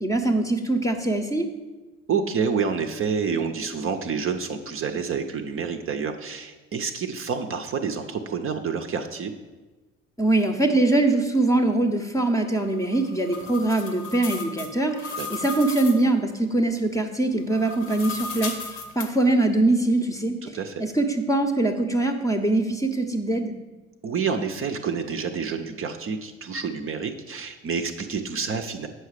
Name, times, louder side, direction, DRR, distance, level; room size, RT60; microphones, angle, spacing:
voice 1, 0.0-1.5 10.2-18.5 18.9-20.3 20.8-23.5, right 2 dB, 10° left, 5 dB, 0.8 m, -23 dB
voice 2, 2.1-9.3 15.2-15.5 20.4-20.8 24.0-28.9, right 6 dB, 35° right, 6 dB, 0.7 m, -28 dB
sound 1, 12.7-16.1 17.4-19.1, left 4 dB, 75° left, 1.1 m, -35 dB
7.8 x 5.6 x 4.8 m, 1.2 s
figure-of-eight pair, 60°, 40 cm